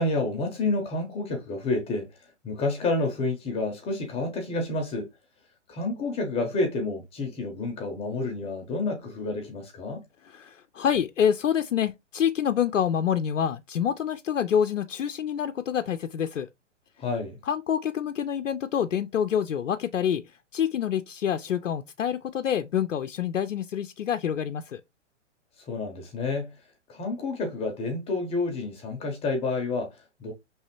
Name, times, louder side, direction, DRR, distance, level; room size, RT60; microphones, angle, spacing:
voice 1, 0.0-5.1 5.7-10.0 17.0-17.4 25.6-26.6 26.9-30.3, left 2 dB, 15° left, 0.7 m, -29 dB
voice 2, 10.2-16.5 17.5-24.8, left 8 dB, 90° left, 0.5 m, -27 dB
5.4 x 3.4 x 3.0 m
hypercardioid pair, 125°, 37 cm